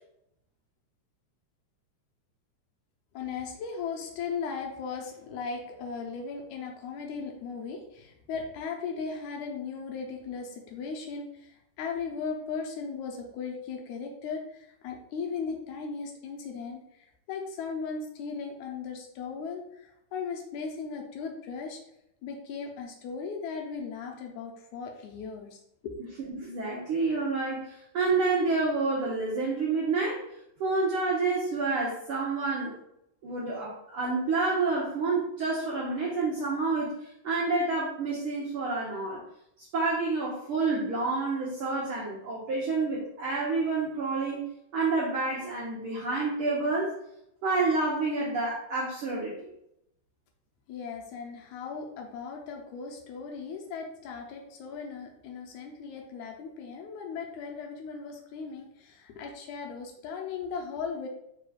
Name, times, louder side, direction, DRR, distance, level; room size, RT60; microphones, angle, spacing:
voice 1, 3.1-21.8 22.2-26.0 50.7-61.1, left 5 dB, 80° left, 1 dB, 1.9 m, -37 dB
voice 2, 26.3-30.2 30.6-32.7 33.2-39.2 39.6-47.0 47.4-49.3, right 3 dB, 80° right, -4 dB, 1.2 m, -29 dB
4.8 x 2.3 x 4.8 m, 0.78 s
omnidirectional pair, 3.6 m